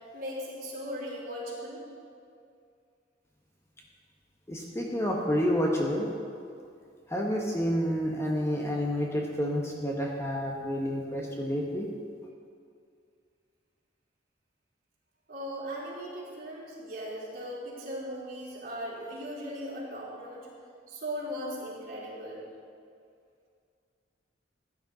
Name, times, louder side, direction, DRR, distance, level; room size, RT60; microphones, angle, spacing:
voice 1, 0.1-1.9 15.3-20.5 20.9-22.5, equal, 50° right, -7 dB, 3.7 m, -38 dB
voice 2, 4.5-6.1 7.1-11.9, equal, 15° left, -1 dB, 1.1 m, -29 dB
15.5 x 10.0 x 4.0 m, 2.3 s
head